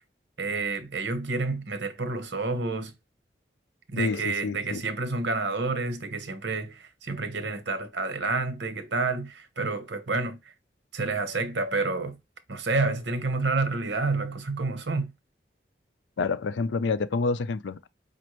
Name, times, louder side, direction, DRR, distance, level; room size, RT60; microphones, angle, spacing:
voice 1, 0.4-2.9 3.9-10.4 10.9-12.2 12.5-15.1, right 3 dB, 80° right, 0.9 m, -29 dB
voice 2, 4.0-4.8 16.2-17.9, left 4 dB, 85° left, 0.4 m, -28 dB
5.1 x 2.5 x 3.0 m
head